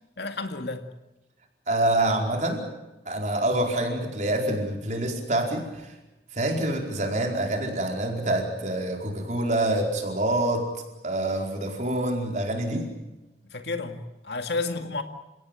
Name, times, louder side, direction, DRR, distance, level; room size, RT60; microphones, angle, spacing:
voice 1, 0.2-0.9 13.5-15.0, left 3 dB, 75° left, 7 dB, 2.1 m, -31 dB
voice 2, 1.7-2.7 3.0-5.9 6.3-10.7 11.0-12.9, right 1 dB, 45° right, 2 dB, 4.7 m, -26 dB
29.5 x 17.5 x 9.1 m, 1.0 s
head